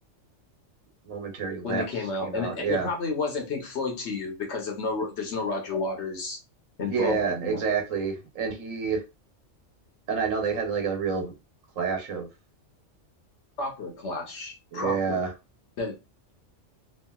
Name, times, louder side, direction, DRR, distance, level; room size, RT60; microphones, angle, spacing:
voice 1, 1.0-1.8 2.2-2.9 6.9-9.0 10.1-11.3 11.8-12.3 14.7-15.3, right 5 dB, 85° right, 1.3 m, -28 dB
voice 2, 1.6-6.4 6.8-7.6 13.6-15.2 15.8-15.9, left 3 dB, 65° left, 1.1 m, -31 dB
3.0 x 2.5 x 2.2 m
omnidirectional pair, 1.3 m